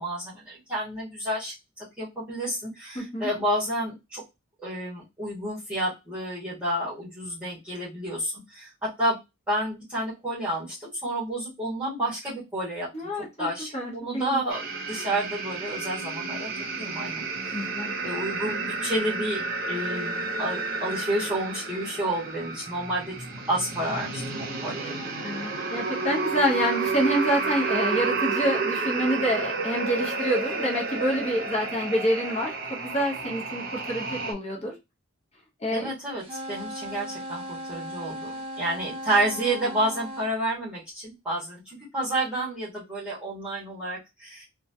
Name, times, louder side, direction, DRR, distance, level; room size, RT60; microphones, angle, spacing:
voice 1, 0.0-4.2 4.6-9.2 9.5-12.9 13.4-14.6 14.9-16.5 16.8-17.6 18.0-23.1 23.5-24.9 35.7-44.4, right 1 dB, 5° right, -9 dB, 1.2 m, -30 dB
voice 2, 2.9-3.3 12.9-14.4 17.5-17.9 25.2-34.7 35.6-35.9, equal, 30° left, -2 dB, 0.9 m, -27 dB
sound 1, 14.5-34.3, right 4 dB, 45° right, 0.7 m, -31 dB
sound 2, 36.2-40.3, equal, 30° right, 1.1 m, -37 dB
2.9 x 2.3 x 2.6 m, 0.23 s
head